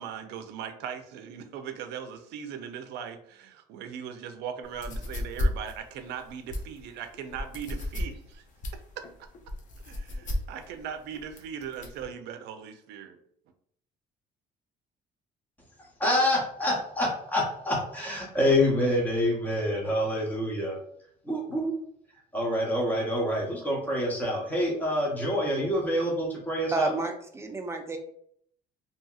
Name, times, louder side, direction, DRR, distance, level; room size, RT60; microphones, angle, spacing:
voice 1, 0.0-8.4 8.7-9.0 9.8-13.2, right 8 dB, 85° right, 8 dB, 0.4 m, -39 dB
sound 1, 4.6-12.0, left 1 dB, 50° left, 0.6 m, -34 dB
voice 2, 16.0-20.8 21.2-21.8 22.3-26.9, left 1 dB, 10° left, -2 dB, 0.8 m, -27 dB
voice 3, 26.7-28.0, right 3 dB, 15° right, 4 dB, 0.4 m, -30 dB
2.8 x 2.7 x 2.3 m, 0.67 s
cardioid pair, 110°, 17 cm